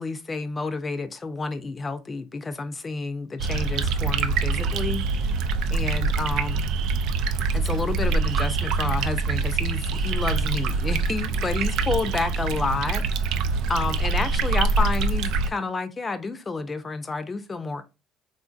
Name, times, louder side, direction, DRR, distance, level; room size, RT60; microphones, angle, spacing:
voice 1, 0.0-5.4 5.7-6.7 7.5-17.8, left 3 dB, 25° left, 0.5 m, -30 dB
sound 1, 3.4-15.5, right 4 dB, 70° right, 0.3 m, -25 dB
3.5 x 2.6 x 2.4 m
supercardioid pair, 85°, 0 cm